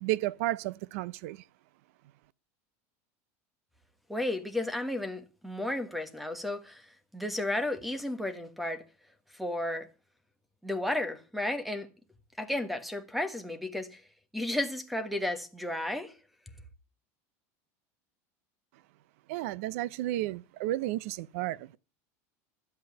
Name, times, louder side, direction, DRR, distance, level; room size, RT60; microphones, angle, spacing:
voice 1, 0.0-1.4 19.3-21.8, right 15 dB, 75° right, 0.6 m, -32 dB
voice 2, 4.1-8.8 9.3-9.9 10.6-11.9 12.4-14.0 14.3-16.1, left 1 dB, ahead, 1.4 m, -33 dB
11.5 x 7.9 x 7.9 m
supercardioid pair, 145°, 8 cm